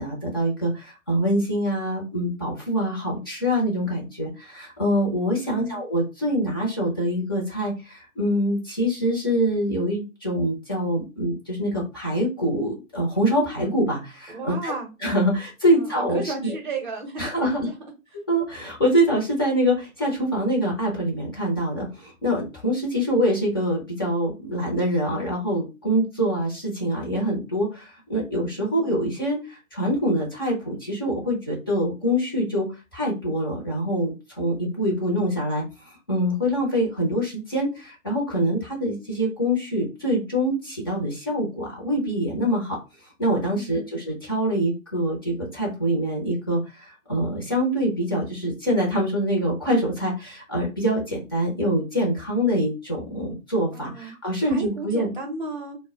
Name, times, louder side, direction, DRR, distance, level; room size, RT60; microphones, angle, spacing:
voice 1, 0.0-14.7 15.0-16.5 17.2-17.7 18.3-32.7 32.9-42.8 43.2-55.1, equal, 15° left, -3 dB, 0.5 m, -25 dB
voice 2, 5.4-5.8 14.3-14.9 15.7-17.8 28.5-28.9 43.5-43.9 53.7-55.8, right 3 dB, 35° right, 3 dB, 0.6 m, -34 dB
2.1 x 2.0 x 3.5 m, 0.29 s
figure-of-eight pair, 140°, 42 cm